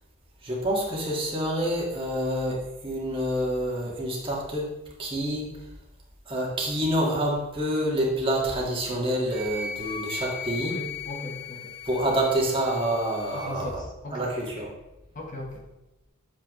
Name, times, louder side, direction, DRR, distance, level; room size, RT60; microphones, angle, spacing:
voice 1, 0.4-4.7 5.0-5.5 6.3-10.8 11.9-13.7 14.1-14.7, right 1 dB, 25° right, -3 dB, 1.8 m, -27 dB
Wind instrument woodwind instrument, 9.3-13.5, left 5 dB, 50° right, 1.2 m, -37 dB
voice 2, 10.6-11.7 13.3-14.3 15.1-15.6, left 1 dB, 40° left, 0 dB, 1.2 m, -38 dB
8.5 x 7.3 x 3.1 m, 0.96 s
head